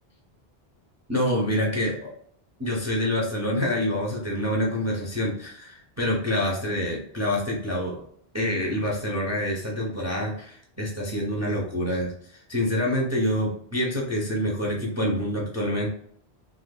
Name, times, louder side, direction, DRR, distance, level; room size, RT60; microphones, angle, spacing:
voice 1, 1.1-2.1 2.6-8.0 8.3-15.9, left 1 dB, 20° right, -3 dB, 0.6 m, -26 dB
3.4 x 3.0 x 2.2 m, 0.64 s
omnidirectional pair, 1.1 m